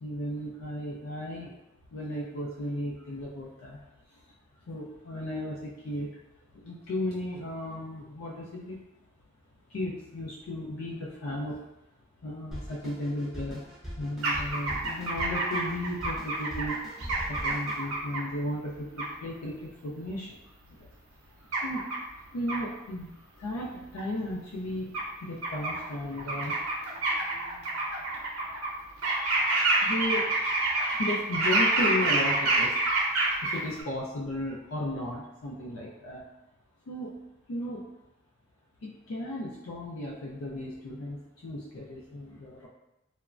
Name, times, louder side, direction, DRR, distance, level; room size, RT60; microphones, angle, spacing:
voice 1, 0.0-1.6 1.9-3.8 4.1-4.2 4.6-6.1 6.5-8.8 9.7-11.6 12.2-13.7 13.9-16.8 17.3-20.4 20.7-20.9 21.4-28.2 29.1-36.2 36.9-37.1 37.5-37.8 38.8-42.7, left 1 dB, 80° left, -4 dB, 0.4 m, -35 dB
Drum kit, 12.5-17.8, equal, 5° right, 0.5 m, -41 dB
sound 1, 14.2-18.2 19.0-19.1 21.5-22.0 22.5-22.6 24.0-24.1 24.9-25.0 25.4-25.9 26.2-28.7 29.0-33.8, right 2 dB, 80° right, 0.6 m, -27 dB
3.1 x 2.1 x 2.4 m, 0.93 s
head